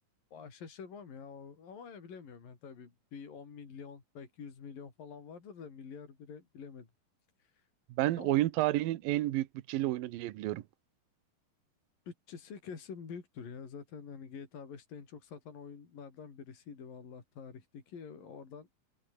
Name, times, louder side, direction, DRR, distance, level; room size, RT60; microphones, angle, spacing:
voice 1, 0.3-6.9 8.2-8.4 12.1-18.7, left 6 dB, 70° left, 5.9 m, -47 dB
voice 2, 8.0-10.6, right 16 dB, 75° right, 2.8 m, -30 dB
omnidirectional pair, 4.1 m